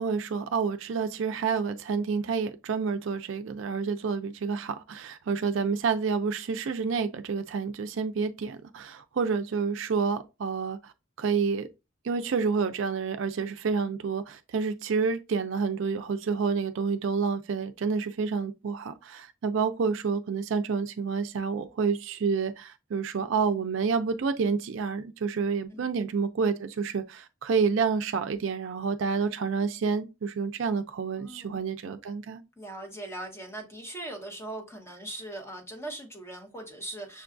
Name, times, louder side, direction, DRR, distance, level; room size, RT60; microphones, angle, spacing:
voice 1, 0.0-10.9 11.2-11.7 12.0-32.4, right 5 dB, 65° right, 0.4 m, -29 dB
voice 2, 31.2-31.6 32.6-37.2, right 1 dB, 15° left, 0.9 m, -40 dB
6.4 x 2.3 x 2.5 m
head